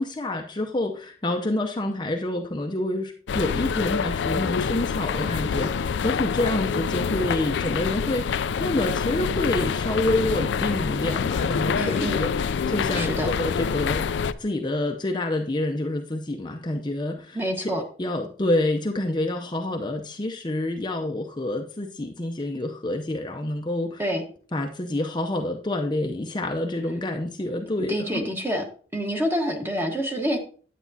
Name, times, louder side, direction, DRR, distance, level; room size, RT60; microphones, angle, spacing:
voice 1, 0.0-14.1 14.4-17.7 18.0-24.0 24.5-28.2, left 1 dB, 25° left, 3 dB, 0.6 m, -28 dB
sound 1, 3.3-14.3, left 6 dB, 75° left, 0.4 m, -26 dB
voice 2, 11.7-12.2 12.9-13.3 17.3-17.8 24.0-24.2 27.8-28.6 28.9-30.4, equal, 15° right, 2 dB, 1.3 m, -27 dB
9.4 x 9.1 x 2.7 m, 0.43 s
head